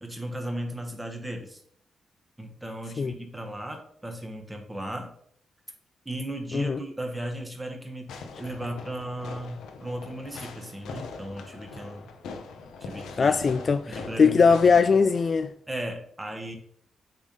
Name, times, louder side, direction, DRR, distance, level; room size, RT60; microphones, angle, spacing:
voice 1, 0.0-1.6 2.4-5.1 6.0-8.1 8.4-12.1 12.8-13.4 13.9-14.8 15.7-16.6, right 1 dB, 10° right, 1.5 m, -36 dB
Fireworks, 8.1-15.5, left 4 dB, 90° left, 1.0 m, -42 dB
voice 2, 13.2-15.5, left 5 dB, 45° left, 0.4 m, -20 dB
8.0 x 3.7 x 5.4 m
cardioid pair, 95°, 0 cm